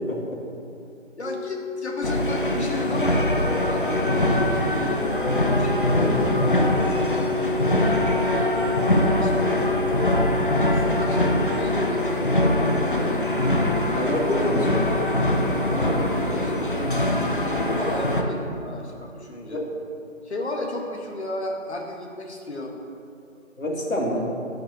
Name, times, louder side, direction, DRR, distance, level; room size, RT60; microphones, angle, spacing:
voice 1, 0.1-0.4 13.9-14.9 19.5-19.7 23.6-24.3, left 1 dB, 80° left, -2 dB, 2.8 m, -26 dB
voice 2, 1.2-7.3 9.2-9.6 9.9-12.7 14.9-16.7 17.5-19.6 20.2-22.7, left 1 dB, 55° left, 1 dB, 1.7 m, -33 dB
sound 1, 1.2-17.8, left 4 dB, 70° right, 1.2 m, -32 dB
sound 2, 2.0-18.2, left 1 dB, 40° left, 0.8 m, -23 dB
13.0 x 10.5 x 3.0 m, 2.4 s
figure-of-eight pair, 180°, 39 cm